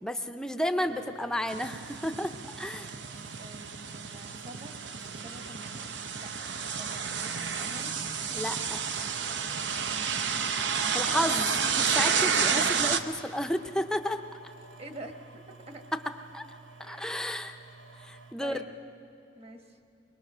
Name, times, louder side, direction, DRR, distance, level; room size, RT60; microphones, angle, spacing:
voice 1, 0.0-2.9 8.3-8.8 10.9-14.2 16.3-16.4 16.8-17.6 18.0-18.6, left 1 dB, 5° left, 6 dB, 0.6 m, -32 dB
sound 1, 0.8-18.3, right 3 dB, 80° right, 1.2 m, -52 dB
sound 2, 1.5-13.0, right 6 dB, 65° right, 0.8 m, -30 dB
voice 2, 3.4-4.8 5.1-7.9 14.8-15.8 16.8-17.1 18.4-18.7 19.3-19.8, right 1 dB, 30° right, 5 dB, 1.4 m, -47 dB
22.5 x 21.5 x 6.2 m, 2.7 s
head